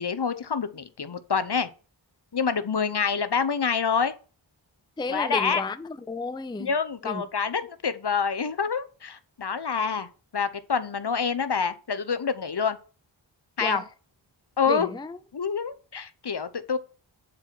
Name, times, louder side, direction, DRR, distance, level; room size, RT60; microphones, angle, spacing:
voice 1, 0.0-1.7 2.3-4.1 5.1-5.6 6.6-10.1 10.3-12.8 13.6-13.8 14.6-14.9 15.3-16.8, left 6 dB, 55° left, 0.8 m, -27 dB
voice 2, 5.0-6.7 7.0-7.3 13.6-13.9 14.6-15.2, left 3 dB, 10° left, 0.5 m, -32 dB
7.4 x 4.6 x 6.0 m
wide cardioid pair, 40°, 47 cm